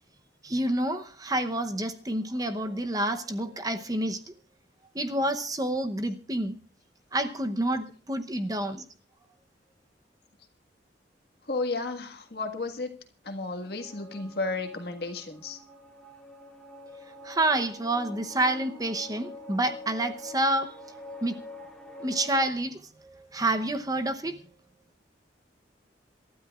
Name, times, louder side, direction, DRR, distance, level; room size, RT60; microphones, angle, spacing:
voice 1, 0.4-4.3 4.9-6.6 7.1-8.9 17.0-20.7 21.2-21.4 22.0-24.4, right 1 dB, 20° right, 7 dB, 0.8 m, -28 dB
voice 2, 11.5-13.0 13.2-15.6, left 3 dB, 60° left, 4 dB, 1.7 m, -33 dB
sound 1, 13.6-22.6, left 1 dB, 5° left, 1.7 m, -45 dB
27.5 x 12.5 x 2.4 m, 0.42 s
head